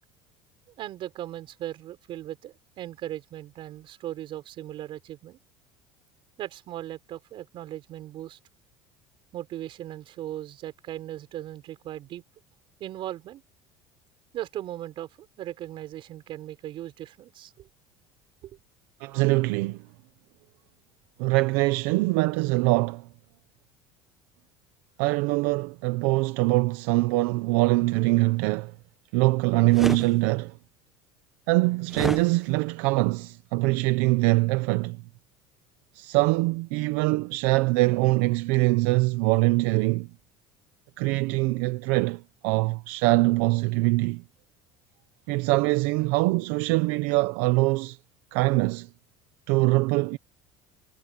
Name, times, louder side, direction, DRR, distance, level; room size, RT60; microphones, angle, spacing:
voice 1, 0.8-5.4 6.4-8.4 9.3-12.2 12.8-13.4 14.3-17.5 18.4-18.5, right 13 dB, 50° right, 5.4 m, -38 dB
voice 2, 19.0-19.8 21.2-23.1 25.0-28.7 29.1-30.5 31.5-35.0 35.9-40.1 41.0-44.2 45.3-48.0 48.3-48.9 49.5-50.2, right 22 dB, 80° right, 1.1 m, -23 dB
sound 1, 29.7-30.1 31.9-32.2, right 1 dB, 5° right, 1.1 m, -29 dB
supercardioid pair, 115°, 11 cm